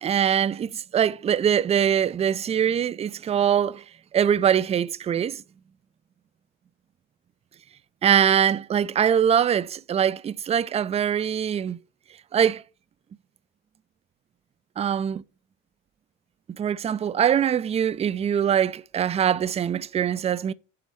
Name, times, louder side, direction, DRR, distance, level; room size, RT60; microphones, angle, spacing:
voice 1, 0.0-3.8 4.1-5.4 8.0-11.8 12.3-12.6 14.8-15.2 16.6-20.5, right 9 dB, 20° right, 0.3 m, -23 dB
10.5 x 4.0 x 6.0 m
hypercardioid pair, 60°, 39 cm